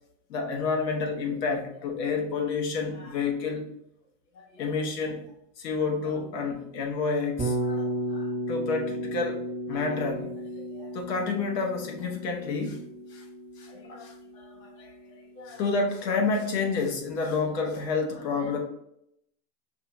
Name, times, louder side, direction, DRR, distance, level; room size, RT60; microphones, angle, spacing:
voice 1, 0.3-3.7 4.4-5.2 5.6-9.4 9.7-12.8 13.1-13.2 13.6-14.9 15.4-18.6, left 4 dB, 80° left, 2 dB, 1.2 m, -30 dB
Bass guitar, 7.4-15.5, right 1 dB, 15° right, 0.7 m, -34 dB
5.7 x 2.3 x 2.9 m, 0.77 s
hypercardioid pair, 110°, 49 cm